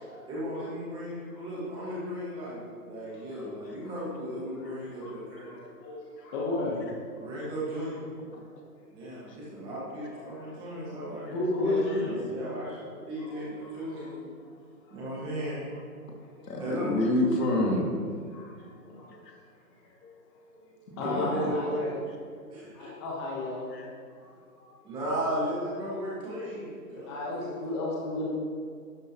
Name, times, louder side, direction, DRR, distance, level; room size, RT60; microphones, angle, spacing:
voice 1, 0.3-5.5 7.2-8.0 8.9-14.0 14.9-15.6 16.6-16.9 20.9-21.9 22.5-22.7 24.8-27.6, equal, 10° right, -8 dB, 1.8 m, -35 dB
voice 2, 3.1-3.5 3.8-4.0 4.6-5.2 5.4-6.8 7.1-7.2 10.3-10.9 11.3-12.2 13.3-13.4 13.8-13.9 14.8-15.0 16.5-16.6 17.4-17.5 18.3-18.5 18.9-19.1 19.8-19.9 21.0-21.9 22.7-23.7 27.1-28.3, left 2 dB, 15° left, -5 dB, 1.2 m, -34 dB
voice 3, 16.4-17.9 18.9-19.3 20.0-20.2 20.5-20.8 21.0-21.5 23.7-23.9 24.2-24.8, left 1 dB, 90° left, -1 dB, 2.6 m, -29 dB
11.5 x 8.7 x 3.1 m, 2.1 s
hypercardioid pair, 165°, 47 cm